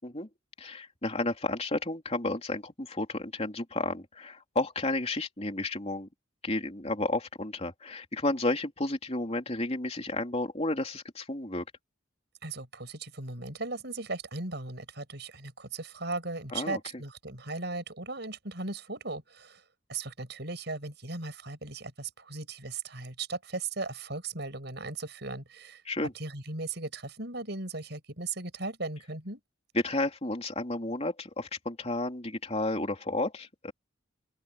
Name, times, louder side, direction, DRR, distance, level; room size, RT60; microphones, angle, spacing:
voice 1, 0.6-6.1 6.4-11.6 16.5-16.8 25.8-26.1 29.7-33.7, left 2 dB, 35° left, 3.3 m, -32 dB
voice 2, 12.4-19.6 19.9-25.8 26.1-29.4, right 3 dB, 60° right, 7.5 m, -37 dB
open air
head